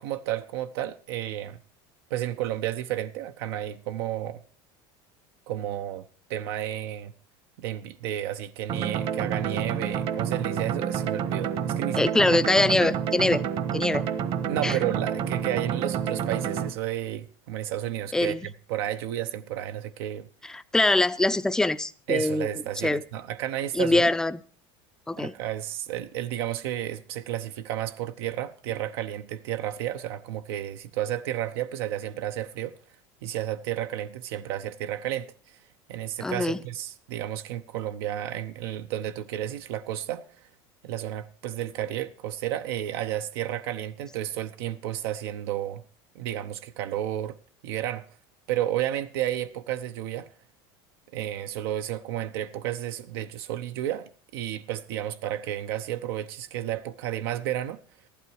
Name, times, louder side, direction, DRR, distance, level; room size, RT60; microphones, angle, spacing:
voice 1, 0.0-1.6 2.1-4.4 5.5-7.1 7.6-12.0 14.4-20.3 22.1-24.1 25.2-32.7 33.2-35.6 35.9-40.2 40.8-45.8 46.1-47.4 47.6-48.1 48.5-50.3 51.1-57.8, right 12 dB, 80° right, 0.9 m, -32 dB
sound 1, 8.7-16.7, right 8 dB, 45° right, 1.2 m, -29 dB
voice 2, 11.9-13.4 13.7-14.0 14.6-14.8 18.1-18.5 20.4-22.5 22.8-23.0 23.7-24.4 25.1-25.3 36.2-36.6, left 2 dB, 5° left, 0.5 m, -23 dB
14.5 x 12.0 x 4.6 m
supercardioid pair, 145°, 13 cm